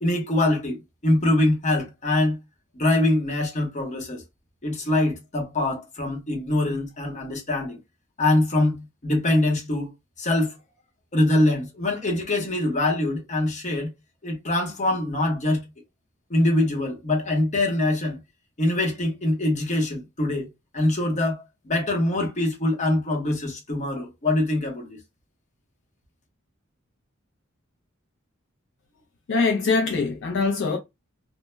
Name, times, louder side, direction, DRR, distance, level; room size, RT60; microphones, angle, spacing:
voice 1, 0.0-2.4 2.7-4.2 4.6-7.8 8.2-9.9 10.2-10.6 11.1-13.9 14.2-15.6 16.3-18.2 18.6-20.5 20.7-25.0, left 1 dB, 35° left, 0.8 m, -24 dB
voice 2, 29.3-30.8, left 4 dB, 65° left, 0.4 m, -23 dB
2.1 x 2.0 x 3.1 m
head